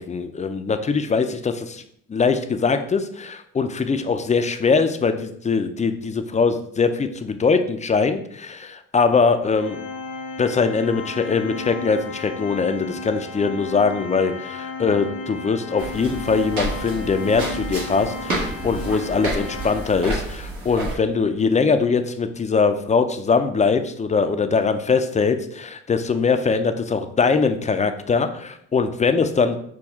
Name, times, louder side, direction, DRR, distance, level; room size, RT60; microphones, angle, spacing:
voice 1, 0.0-1.8 2.1-9.8 10.4-29.6, left 5 dB, 25° left, 8 dB, 0.4 m, -22 dB
Organ, 9.6-20.3, left 3 dB, 80° left, 1.1 m, -34 dB
sound 1, 15.8-21.0, right 2 dB, 80° right, 1.3 m, -30 dB
6.0 x 2.3 x 3.5 m, 0.67 s
cardioid pair, 90°, 30 cm